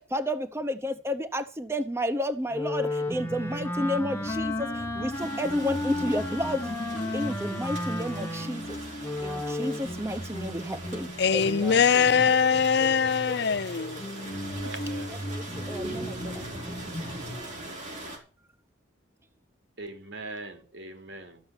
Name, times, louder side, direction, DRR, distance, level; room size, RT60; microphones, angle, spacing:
voice 1, 0.0-6.7 7.1-12.3 12.7-12.9 15.1-16.6 17.0-17.2, equal, 15° right, 0.7 m, -32 dB
Wind instrument woodwind instrument, 2.5-9.9, left 1 dB, 15° left, 1.6 m, -33 dB
sound 1, 3.1-17.4, equal, 30° left, 2.5 m, -38 dB
sound 2, 5.1-18.2, right 2 dB, 40° right, 5.3 m, -42 dB
voice 2, 11.2-14.0, left 6 dB, 60° left, 0.5 m, -22 dB
voice 3, 14.2-15.2 19.8-21.4, right 2 dB, 70° right, 3.0 m, -41 dB
13.5 x 6.9 x 8.9 m
head